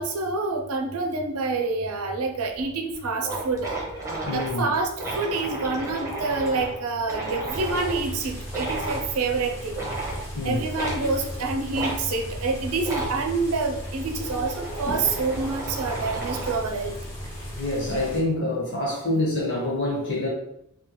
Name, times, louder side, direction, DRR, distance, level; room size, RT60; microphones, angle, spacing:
voice 1, 0.0-3.7 4.3-9.8 10.4-16.9, right 3 dB, 75° right, 3 dB, 0.6 m, -27 dB
sound 1, 2.5-2.6 2.9-3.0 3.2-8.0 8.5-9.1 9.7-10.2 10.8-11.0 11.7-12.0 12.8-13.2 13.9-16.7, right 2 dB, 15° right, 0.8 m, -33 dB
voice 2, 4.3-4.7 10.3-10.6 17.5-20.3, left 2 dB, 55° left, -5 dB, 1.4 m, -26 dB
sound 2, 7.5-18.2, equal, 10° left, 0.9 m, -36 dB
3.3 x 2.9 x 3.0 m, 0.78 s
head